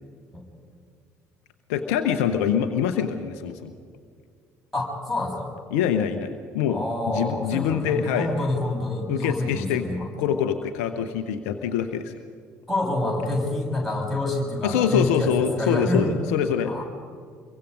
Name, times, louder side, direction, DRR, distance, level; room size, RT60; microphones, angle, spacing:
voice 1, 1.7-3.7 5.7-8.3 9.1-9.9 10.2-12.1 14.6-16.7, left 8 dB, 65° left, 8 dB, 0.9 m, -25 dB
voice 2, 4.7-5.5 6.7-10.1 12.7-15.3 15.6-16.1 16.6-16.8, left 1 dB, 5° left, -3 dB, 7.2 m, -27 dB
26.0 x 23.0 x 5.2 m, 2.1 s
figure-of-eight pair, 50°, 8 cm